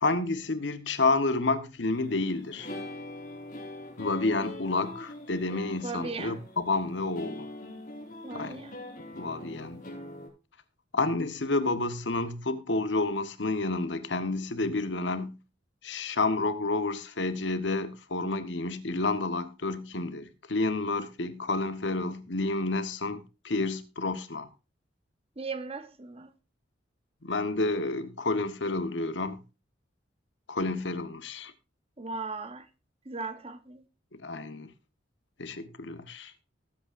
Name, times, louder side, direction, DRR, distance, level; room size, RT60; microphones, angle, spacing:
voice 1, 0.0-2.7 4.0-7.5 8.3-8.6 9.1-9.8 10.9-15.4 15.8-24.5 27.2-29.4 30.5-31.5 34.1-34.7 35.4-36.3, left 3 dB, 70° left, 1.2 m, -30 dB
sound 1, 1.9-10.3, left 1 dB, 45° left, 5.1 m, -43 dB
voice 2, 5.8-6.4 8.2-8.8 25.4-26.3 32.0-32.7 33.0-33.8, right 3 dB, 30° right, 1.0 m, -37 dB
19.0 x 8.4 x 2.5 m
head